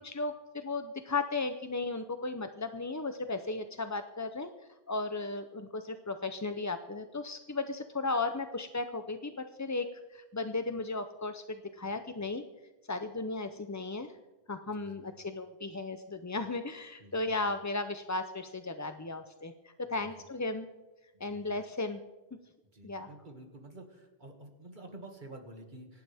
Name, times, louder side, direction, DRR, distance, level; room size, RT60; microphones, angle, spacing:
voice 1, 0.0-4.5 4.9-9.3 9.6-12.4 12.9-14.1 14.5-19.5 19.9-20.7 21.2-22.0 22.8-23.1, left 3 dB, 25° left, 8 dB, 0.4 m, -35 dB
voice 2, 14.7-15.2 17.0-17.5 19.9-20.3 21.1-21.6 22.7-26.0, right 2 dB, 50° right, 3 dB, 2.2 m, -50 dB
25.5 x 11.5 x 3.5 m, 1.1 s
omnidirectional pair, 1.1 m